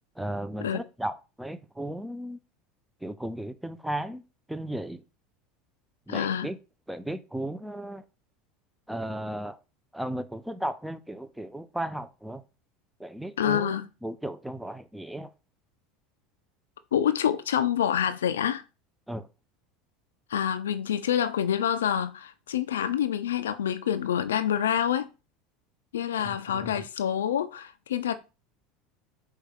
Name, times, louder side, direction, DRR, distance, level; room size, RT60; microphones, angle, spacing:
voice 1, 0.2-2.4 3.0-4.2 4.5-5.0 6.1-6.6 6.9-8.0 8.9-9.6 9.9-12.4 13.0-15.3 19.1-19.3 26.2-26.9, right 1 dB, 5° right, 0.4 m, -35 dB
voice 2, 6.1-6.5 13.4-13.9 16.9-18.6 20.3-25.1 25.9-28.1, left 9 dB, 85° left, 0.3 m, -27 dB
4.6 x 2.3 x 3.5 m
hypercardioid pair, 85°, 0 cm